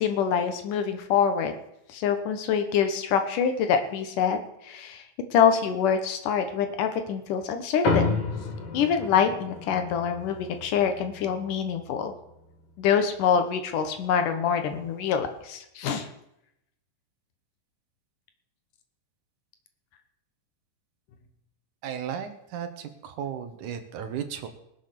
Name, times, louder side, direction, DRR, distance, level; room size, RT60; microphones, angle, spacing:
voice 1, 0.0-1.6 1.9-4.4 4.6-5.0 5.3-8.1 8.7-12.1 12.8-16.1, left 7 dB, 75° left, 7 dB, 2.6 m, -25 dB
sound 1, 7.8-12.6, left 3 dB, 45° left, 2.8 m, -31 dB
voice 2, 21.8-24.5, right 8 dB, 65° right, 8 dB, 2.5 m, -35 dB
19.5 x 7.7 x 6.7 m, 0.81 s
omnidirectional pair, 4.0 m